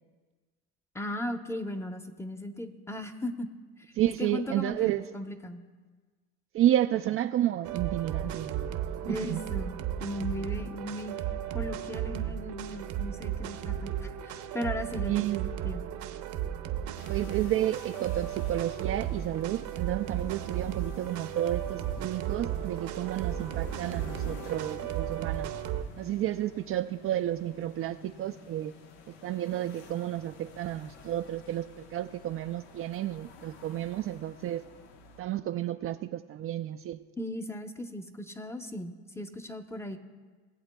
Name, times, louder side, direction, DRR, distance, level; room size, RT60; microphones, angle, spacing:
voice 1, 0.9-3.5 4.2-5.6 9.1-11.2 11.5-15.1 15.6-15.9 37.2-40.0, left 1 dB, 10° left, 7 dB, 0.8 m, -37 dB
voice 2, 4.0-5.1 6.5-8.7 9.0-9.4 15.1-15.5 17.1-25.5 26.0-28.7 29.1-34.6 35.2-37.0, right 13 dB, 40° right, 8 dB, 0.4 m, -31 dB
sound 1, 7.6-25.8, right 10 dB, 60° right, 0.9 m, -34 dB
sound 2, 17.0-35.2, left 5 dB, 80° left, 1.0 m, -51 dB
19.5 x 7.8 x 2.3 m, 1.4 s
supercardioid pair, 80°, 33 cm